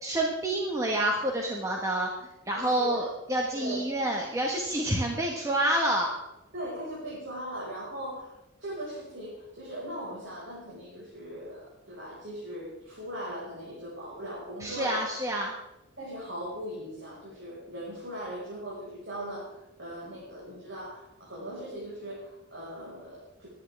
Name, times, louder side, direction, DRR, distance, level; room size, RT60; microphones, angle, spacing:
voice 1, 0.0-2.1 2.5-6.1 14.6-15.5, right 1 dB, 15° right, -1 dB, 1.4 m, -28 dB
voice 2, 2.5-3.1 3.5-3.9 6.5-15.0 16.0-23.5, equal, 65° right, -6 dB, 5.1 m, -39 dB
22.0 x 10.5 x 3.5 m, 0.93 s
head